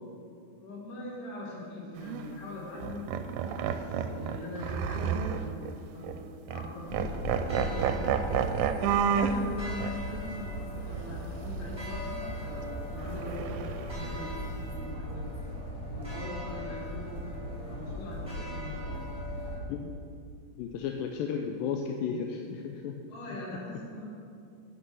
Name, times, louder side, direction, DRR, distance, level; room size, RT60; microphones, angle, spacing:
voice 1, 0.6-3.2 3.6-7.1 7.4-8.4 8.8-15.3 15.9-19.0 23.1-24.0, left 1 dB, 65° left, -5 dB, 3.8 m, -42 dB
sound 1, 2.0-2.2 2.8-5.7 6.0-6.2 6.5-6.7 6.9-9.4 9.8-9.9 13.1-14.1, right 7 dB, 80° right, 2.1 m, -30 dB
sound 2, 6.9-19.6, equal, ahead, 1.4 m, -37 dB
voice 2, 20.6-22.9, left 6 dB, 80° left, 3 dB, 2.2 m, -34 dB
11.0 x 6.2 x 6.2 m, 2.5 s
omnidirectional pair, 4.1 m